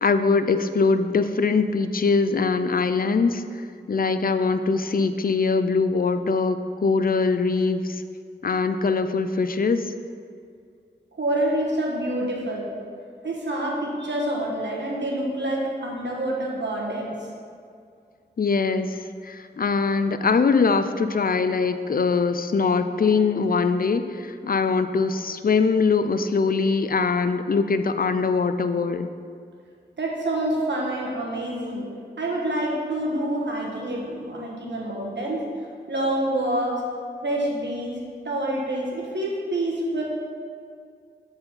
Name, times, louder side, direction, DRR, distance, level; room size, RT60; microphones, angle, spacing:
voice 1, 0.0-3.4 3.9-8.0 8.4-9.9 18.4-19.0 19.2-29.1, left 4 dB, 55° left, 10 dB, 0.4 m, -22 dB
voice 2, 11.2-12.7 13.2-17.1 30.0-31.9 32.2-35.4 35.9-36.8 37.2-38.0 38.2-40.0, right 1 dB, 85° right, -2 dB, 1.4 m, -27 dB
7.8 x 4.3 x 5.5 m, 2.3 s
wide cardioid pair, 60°, 18 cm